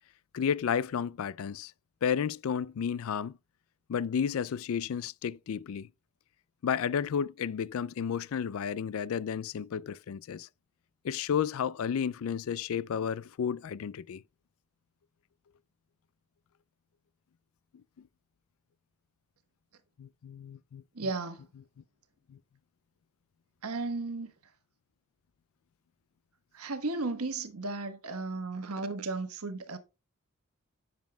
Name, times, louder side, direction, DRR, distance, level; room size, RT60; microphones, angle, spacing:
voice 1, 0.3-1.7 2.0-3.3 3.9-5.9 6.6-10.5 11.0-14.2 20.0-21.1 22.3-22.4, left 7 dB, 65° left, 0.3 m, -32 dB
voice 2, 21.0-21.4 23.6-24.3 26.5-29.8, right 3 dB, 80° right, 1.2 m, -34 dB
10.5 x 7.3 x 2.3 m
head